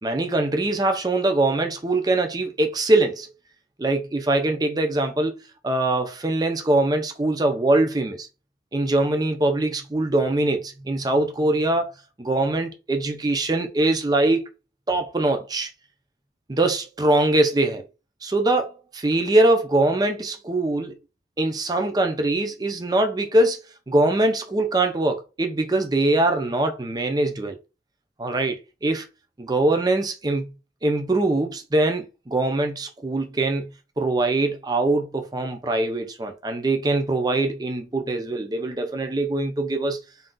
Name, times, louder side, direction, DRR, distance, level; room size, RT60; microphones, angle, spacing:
voice 1, 0.0-3.3 3.8-8.3 8.7-11.9 12.2-14.5 14.9-15.7 16.5-17.9 18.2-21.0 21.4-27.6 28.2-29.1 29.4-30.5 30.8-33.7 34.0-40.0, right 2 dB, 20° right, 0.5 m, -22 dB
2.6 x 2.3 x 3.6 m
head